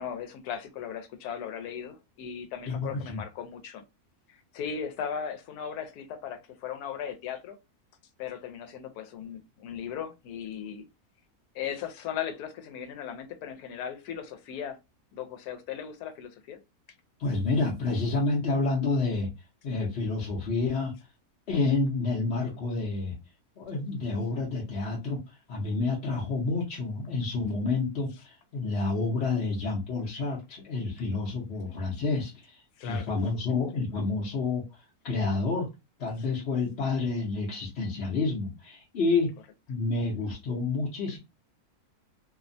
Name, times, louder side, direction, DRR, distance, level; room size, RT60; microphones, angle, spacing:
voice 1, 0.0-3.8 4.3-7.6 8.2-10.9 11.5-14.8 15.1-16.6 31.5-31.8 32.8-33.1, left 8 dB, 90° left, 1.1 m, -37 dB
voice 2, 2.7-3.2 17.2-19.3 19.6-20.9 21.5-23.2 23.6-34.6 35.0-35.7 36.0-39.3 39.7-41.2, left 3 dB, 55° left, 0.8 m, -29 dB
2.8 x 2.1 x 2.5 m
omnidirectional pair, 1.6 m